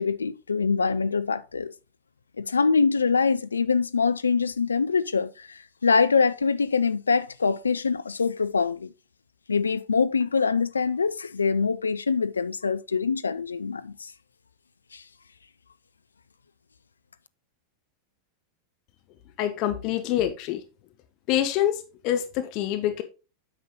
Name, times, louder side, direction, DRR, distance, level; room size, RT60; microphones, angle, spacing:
voice 1, 0.0-1.7 2.4-8.9 9.5-14.1 14.9-15.0, left 5 dB, 75° left, 0.4 m, -24 dB
voice 2, 19.4-20.6 21.3-23.0, left 11 dB, 40° left, 1.0 m, -26 dB
8.9 x 5.6 x 3.7 m
figure-of-eight pair, 90°, 0 cm